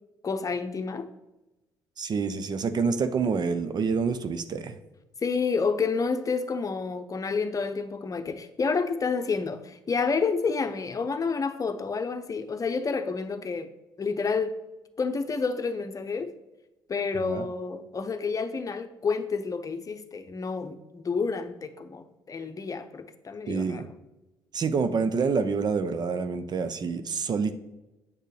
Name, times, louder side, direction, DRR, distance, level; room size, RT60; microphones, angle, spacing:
voice 1, 0.2-1.1 5.2-13.7 14.0-14.6 15.0-16.3 16.9-23.8, left 4 dB, 35° left, 9 dB, 0.8 m, -29 dB
voice 2, 2.0-4.8 17.3-17.4 23.5-23.9 24.5-27.6, right 5 dB, 45° right, 11 dB, 0.7 m, -27 dB
8.9 x 6.6 x 3.3 m, 1.0 s
hypercardioid pair, 55°, 10 cm